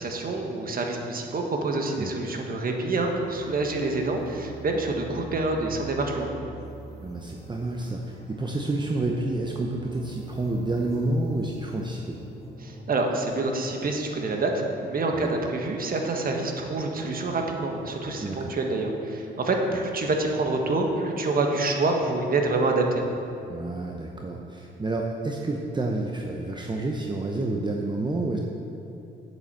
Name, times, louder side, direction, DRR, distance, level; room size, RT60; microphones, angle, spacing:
voice 1, 0.0-6.3 12.6-23.1, right 2 dB, 45° right, 2 dB, 1.5 m, -27 dB
sound 1, 3.0-12.8, equal, 20° left, 1.9 m, -45 dB
voice 2, 7.0-12.2 15.1-15.3 18.2-18.5 23.5-28.4, right 2 dB, 20° right, 0 dB, 0.8 m, -29 dB
7.9 x 7.1 x 7.6 m, 2.8 s
cardioid pair, 90°, 20 cm